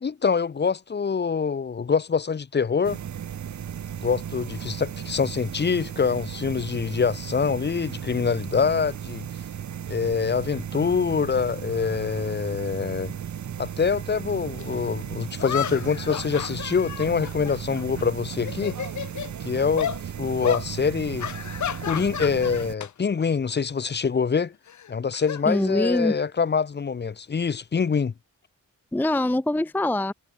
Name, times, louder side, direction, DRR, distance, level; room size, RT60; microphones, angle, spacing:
voice 1, 0.0-3.0 4.0-9.2 9.9-13.1 13.6-18.8 19.4-19.9 20.2-21.3 21.8-24.5 24.9-28.1, left 5 dB, 35° left, 1.0 m, -25 dB
sound 1, 2.8-22.8, right 9 dB, 70° right, 2.1 m, -35 dB
sound 2, 14.6-14.7 15.4-18.1 18.4-19.3 19.8-20.0 20.4-20.7 21.2-22.9 23.2-23.5 24.7-26.1, left 9 dB, 70° left, 2.1 m, -32 dB
voice 2, 25.5-26.2 28.9-30.1, left 1 dB, 5° left, 0.6 m, -23 dB
wide cardioid pair, 140°, 30 cm